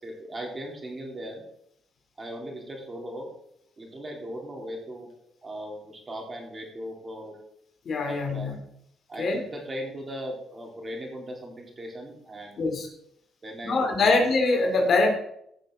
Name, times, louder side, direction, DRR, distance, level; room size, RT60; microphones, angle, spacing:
voice 1, 0.0-1.4 2.2-3.3 3.8-5.1 5.4-7.4 8.1-8.5 9.1-12.8 13.4-14.2, equal, 30° right, 0 dB, 3.4 m, -38 dB
voice 2, 7.9-8.6 9.2-9.4 12.6-12.9 13.6-15.1, left 3 dB, 55° left, 3 dB, 2.5 m, -23 dB
15.5 x 6.4 x 3.7 m, 0.71 s
cardioid pair, 90°, 0 cm